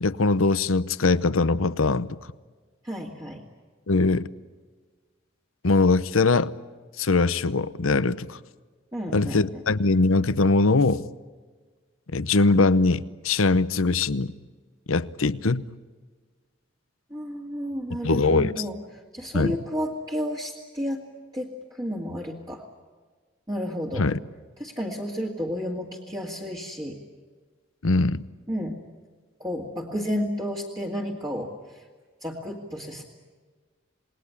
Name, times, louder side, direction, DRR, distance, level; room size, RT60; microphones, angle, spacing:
voice 1, 0.0-2.2 3.9-4.3 5.6-6.5 7.0-8.4 9.1-11.0 12.1-14.3 14.9-15.6 18.0-18.5 19.3-19.6 24.0-24.2 27.8-28.2, left 3 dB, 90° left, 0.9 m, -21 dB
voice 2, 2.8-3.4 8.9-9.6 17.1-18.8 19.1-21.0 21.3-22.6 23.5-24.1 24.6-27.0 28.5-28.8 29.4-31.8 32.2-33.0, equal, 20° right, 2.2 m, -31 dB
28.0 x 20.5 x 8.5 m
head